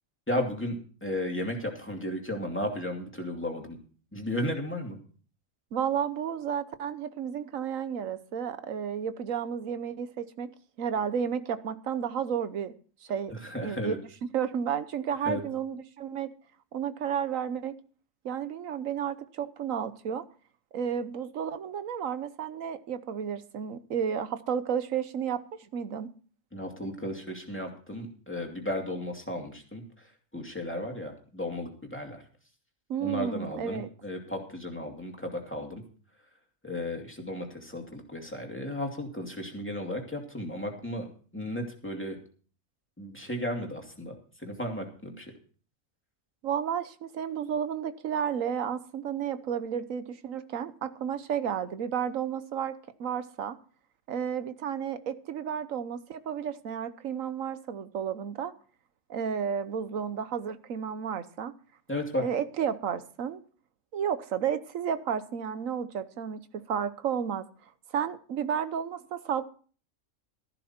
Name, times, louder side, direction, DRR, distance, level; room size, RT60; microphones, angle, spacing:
voice 1, 0.3-3.8 4.1-5.0 13.3-14.0 15.2-15.4 26.5-32.2 33.0-35.8 36.6-42.2 43.0-45.3 61.9-62.3, left 1 dB, 10° left, 1 dB, 2.5 m, -34 dB
voice 2, 5.7-10.5 10.8-12.7 13.1-13.9 14.3-16.3 16.7-17.8 18.2-20.2 20.7-25.4 25.7-26.1 32.9-33.9 46.4-52.7 53.0-53.6 54.1-58.5 59.1-61.5 62.2-63.4 63.9-67.5 67.9-69.4, right 8 dB, 85° right, 13 dB, 1.3 m, -32 dB
14.0 x 12.0 x 4.4 m, 0.42 s
omnidirectional pair, 1.3 m